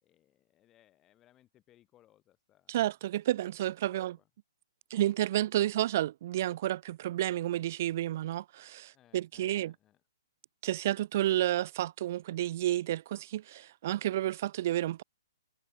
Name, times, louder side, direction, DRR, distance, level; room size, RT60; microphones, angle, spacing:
voice 1, 0.0-2.8 3.9-4.3 8.9-10.0, left 13 dB, 15° left, 4.3 m, -66 dB
voice 2, 2.7-4.2 4.9-9.7 10.6-15.0, right 13 dB, 35° right, 0.5 m, -31 dB
hypercardioid pair, 175°, 2 cm